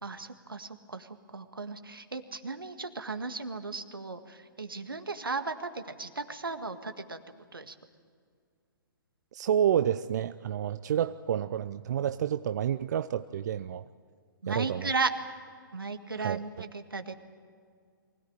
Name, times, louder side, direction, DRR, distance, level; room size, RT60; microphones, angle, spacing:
voice 1, 0.0-7.2 7.5-7.8 14.4-15.1 15.7-17.1, right 4 dB, 80° right, 8 dB, 1.8 m, -35 dB
voice 2, 9.3-13.9 14.5-14.9 16.2-16.4, right 9 dB, 50° right, 12 dB, 0.5 m, -29 dB
24.0 x 17.5 x 8.9 m, 2.1 s
figure-of-eight pair, 120°, 12 cm